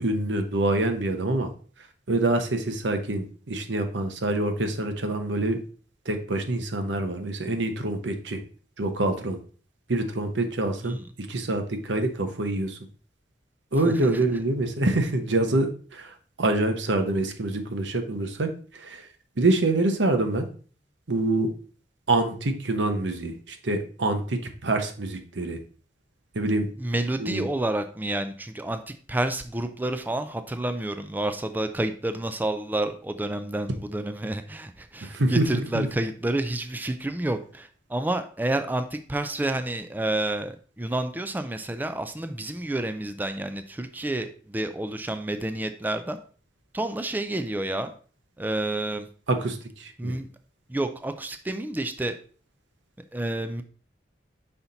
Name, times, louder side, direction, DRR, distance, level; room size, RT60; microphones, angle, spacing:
voice 1, 0.0-1.5 1.8-5.6 6.0-8.4 8.8-9.4 9.9-12.8 13.7-19.1 19.4-20.5 21.1-21.5 22.1-25.6 26.3-26.7 27.2-27.5 35.0-35.9 49.3-50.2, right 2 dB, 90° right, 7 dB, 0.9 m, -26 dB
voice 2, 26.8-46.2 46.7-47.9 48.4-49.1 50.0-50.3 50.7-52.1 53.1-53.6, right 1 dB, 10° right, 9 dB, 0.3 m, -29 dB
5.7 x 4.2 x 3.9 m, 0.41 s
head